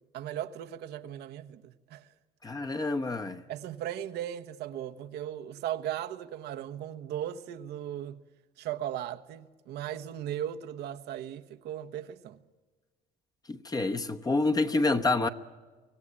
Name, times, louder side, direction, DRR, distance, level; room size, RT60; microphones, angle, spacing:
voice 1, 0.1-2.1 3.5-8.2 8.6-12.4, right 11 dB, 80° right, 1.2 m, -37 dB
voice 2, 2.4-3.4 13.5-15.3, left 2 dB, 20° left, 1.0 m, -28 dB
25.0 x 17.0 x 8.7 m
cardioid pair, 110°, 17 cm